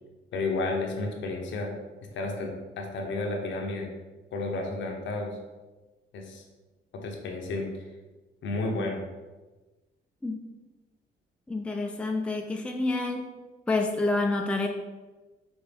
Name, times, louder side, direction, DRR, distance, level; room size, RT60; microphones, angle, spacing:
voice 1, 0.3-1.7 2.1-3.9 4.3-5.4 6.1-6.4 6.9-7.8 8.4-9.0, left 2 dB, 70° left, 1 dB, 0.8 m, -32 dB
voice 2, 11.5-13.3 13.7-14.7, left 2 dB, 5° left, 3 dB, 0.4 m, -28 dB
5.2 x 2.6 x 3.3 m, 1.2 s
cardioid pair, 90°, 20 cm